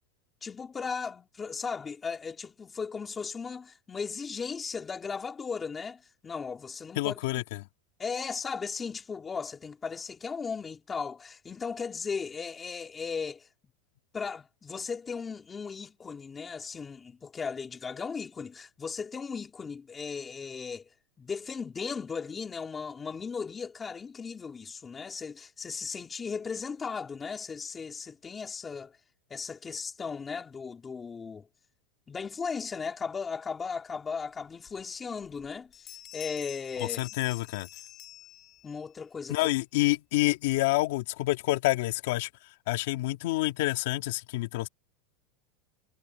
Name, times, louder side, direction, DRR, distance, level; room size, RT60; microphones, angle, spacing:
voice 1, 0.4-7.2 8.0-13.5 14.1-20.9 21.2-29.0 29.3-31.5 32.1-37.0 38.6-39.4, left 5 dB, 15° left, 3.4 m, -36 dB
voice 2, 7.0-7.6 36.8-37.7 39.3-42.3 42.7-44.7, left 19 dB, 65° left, 2.9 m, -28 dB
Bell, 34.7-34.8 35.2-35.5 35.7-38.9, left 14 dB, 35° left, 4.8 m, -47 dB
supercardioid pair, 155°, 0 cm